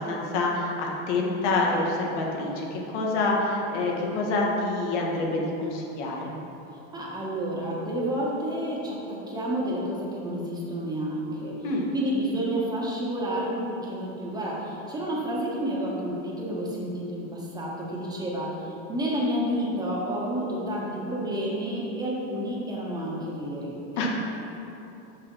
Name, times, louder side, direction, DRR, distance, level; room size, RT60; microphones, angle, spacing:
voice 1, 0.0-6.3 11.6-11.9 24.0-24.1, left 2 dB, 70° left, -1 dB, 1.7 m, -27 dB
voice 2, 6.9-11.5 11.9-24.1, equal, 10° right, -5 dB, 1.5 m, -30 dB
6.4 x 6.3 x 5.6 m, 3.0 s
supercardioid pair, 145°, 36 cm